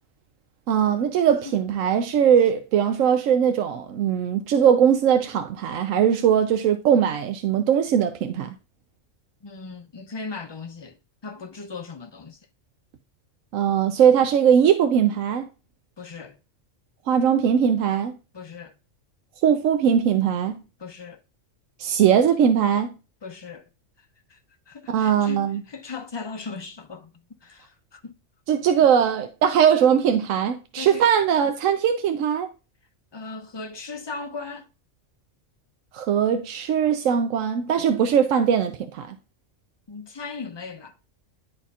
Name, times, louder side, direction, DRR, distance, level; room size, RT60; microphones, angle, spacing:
voice 1, 0.7-8.5 13.5-15.5 17.1-18.1 19.4-20.6 21.8-22.9 24.9-25.6 28.5-32.5 35.9-39.2, right 8 dB, 85° right, 1.0 m, -20 dB
voice 2, 9.4-11.0 11.2-12.4 16.0-16.4 18.3-18.7 20.8-21.2 23.2-23.7 24.3-24.4 24.7-27.1 27.4-28.1 30.8-31.1 33.1-34.7 39.9-40.9, left 4 dB, 30° left, 0.5 m, -37 dB
11.0 x 4.1 x 2.4 m
omnidirectional pair, 1.3 m